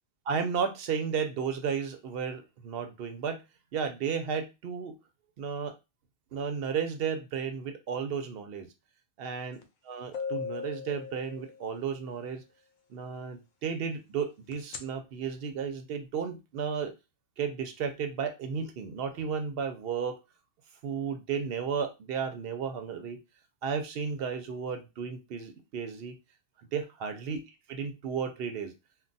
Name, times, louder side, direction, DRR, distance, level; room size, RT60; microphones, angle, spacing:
voice 1, 0.3-3.4 3.7-4.9 5.4-5.7 6.3-8.7 9.2-12.4 12.9-16.9 17.4-20.2 20.8-23.2 23.6-26.2 26.7-27.4 27.7-28.7, right 6 dB, 65° right, 6 dB, 0.8 m, -33 dB
sound 1, 9.6-9.7 10.1-11.9 14.5-14.8, left 6 dB, 60° left, 0.5 m, -37 dB
2.3 x 2.2 x 3.9 m, 0.26 s
omnidirectional pair, 1.2 m